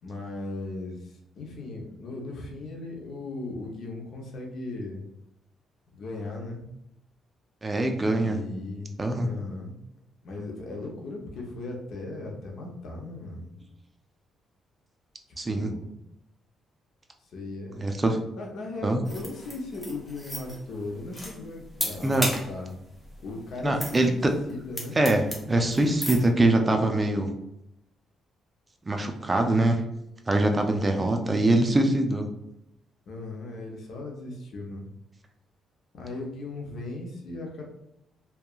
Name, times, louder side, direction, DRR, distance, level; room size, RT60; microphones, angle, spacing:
voice 1, 0.0-5.0 5.9-6.6 8.2-9.7 10.2-13.6 15.5-15.9 17.2-17.9 18.3-22.7 23.2-24.2 24.5-25.0 30.7-31.2 33.1-34.9 35.9-37.6, left 2 dB, 65° left, 0 dB, 0.7 m, -37 dB
voice 2, 7.6-8.4 9.0-9.3 15.4-15.7 17.8-18.2 18.8-19.0 22.0-22.3 23.6-24.3 25.0-27.3 28.9-29.8 30.3-32.3, right 2 dB, 25° right, 4 dB, 0.4 m, -23 dB
sound 1, 19.0-26.3, equal, 5° left, 0.8 m, -36 dB
2.8 x 2.3 x 2.3 m, 0.83 s
cardioid pair, 90°, 0 cm